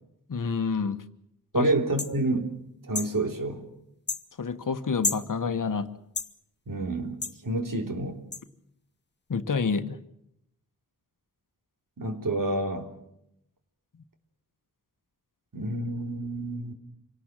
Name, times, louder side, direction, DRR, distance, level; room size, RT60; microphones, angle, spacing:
voice 1, 0.3-1.0 1.5-1.7 4.4-5.9 9.3-10.0, left 5 dB, 55° left, 10 dB, 1.3 m, -28 dB
voice 2, 1.5-2.6 2.9-3.7 6.7-8.2 12.0-12.9 15.5-16.7, right 2 dB, 60° right, 4 dB, 3.4 m, -28 dB
sound 1, 2.0-2.1 2.9-3.1 4.1-4.2 5.0-5.3 6.2-6.3 7.2-7.4 8.3-8.4, left 3 dB, 30° left, 1.1 m, -30 dB
26.5 x 18.0 x 7.5 m, 0.79 s
wide cardioid pair, 110°, 37 cm